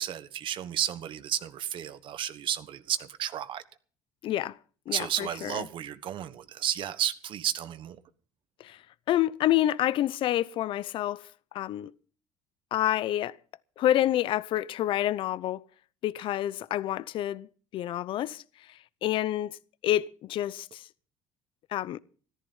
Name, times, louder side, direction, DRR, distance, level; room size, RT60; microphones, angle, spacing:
voice 1, 0.0-3.6 4.9-8.0, right 10 dB, 55° right, 1.4 m, -32 dB
voice 2, 4.2-4.6 4.9-5.0 5.4-5.5 8.6-8.8 9.1-11.2 11.5-11.9 12.7-13.3 13.8-15.6 16.0-17.5 17.7-18.4 19.0-19.6 19.8-20.8 21.7-22.0, left 13 dB, 60° left, 0.7 m, -28 dB
14.0 x 14.0 x 5.5 m
supercardioid pair, 100°, 10 cm